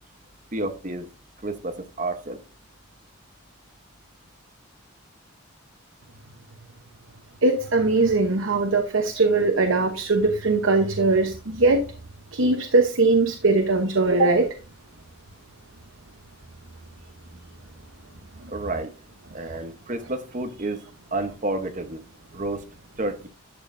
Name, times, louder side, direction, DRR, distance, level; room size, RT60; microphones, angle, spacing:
voice 1, 0.5-1.1 1.4-2.4 18.5-18.9 19.3-20.8 21.1-22.0 22.3-22.7 23.0-23.3, right 2 dB, 35° right, 0.9 m, -30 dB
voice 2, 7.4-11.9 12.3-14.6 19.4-19.6, right 3 dB, 65° right, 0.9 m, -21 dB
11.5 x 7.3 x 2.6 m
head